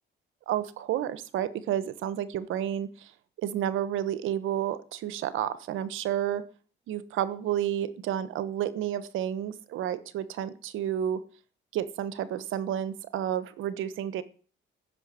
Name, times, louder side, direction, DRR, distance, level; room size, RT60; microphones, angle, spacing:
voice 1, 0.5-3.1 3.4-6.5 6.9-11.2 11.7-14.2, right 10 dB, 85° right, 15 dB, 1.2 m, -31 dB
15.5 x 6.8 x 9.9 m, 0.41 s
cardioid pair, 90°, 20 cm